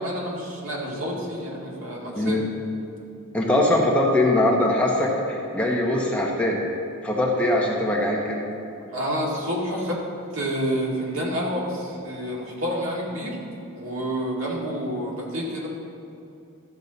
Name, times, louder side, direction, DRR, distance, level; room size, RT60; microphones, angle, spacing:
voice 1, 0.0-2.4 8.9-10.0 10.3-13.4 13.7-15.7, equal, 65° right, -4 dB, 2.1 m, -28 dB
voice 2, 3.3-6.6 7.0-8.4, left 1 dB, 5° left, -3 dB, 1.1 m, -22 dB
13.0 x 7.3 x 4.1 m, 2.7 s
head